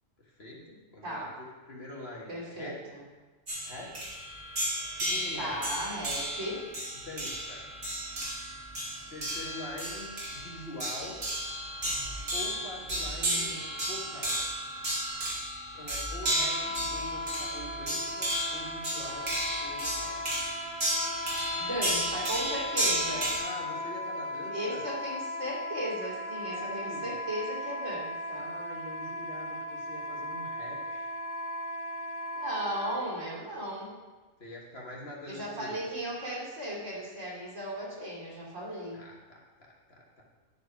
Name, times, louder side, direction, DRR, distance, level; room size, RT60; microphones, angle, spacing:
voice 1, 0.2-2.8 3.6-4.1 4.9-5.6 6.9-7.7 9.1-11.2 12.3-14.4 15.7-19.3 19.6-20.2 23.4-24.9 26.5-27.2 28.4-31.1 34.4-35.8 38.9-40.2, left 1 dB, 50° left, -3 dB, 1.8 m, -44 dB
voice 2, 1.0-1.3 2.3-3.0 5.4-6.7 12.9-13.7 21.6-23.3 24.5-28.5 32.3-33.9 35.3-39.0, equal, 70° right, -6 dB, 3.2 m, -36 dB
sound 1, 3.5-23.4, right 1 dB, 85° right, 2.8 m, -33 dB
Wind instrument woodwind instrument, 16.2-33.0, left 1 dB, 90° left, 1.7 m, -37 dB
11.5 x 4.8 x 5.2 m, 1.3 s
omnidirectional pair, 1.3 m